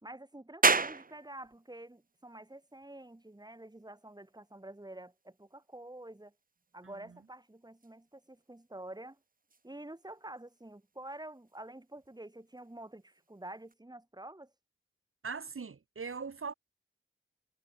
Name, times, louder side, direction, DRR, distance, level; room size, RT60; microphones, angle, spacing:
voice 1, 0.0-6.3 6.7-9.2 9.6-14.5, right 1 dB, 20° right, 5.3 m, -48 dB
sound 1, 0.6-13.7, right 4 dB, 40° right, 1.2 m, -39 dB
voice 2, 6.8-7.2 15.2-16.5, right 5 dB, 85° right, 4.4 m, -41 dB
wide cardioid pair, 70°, 21 cm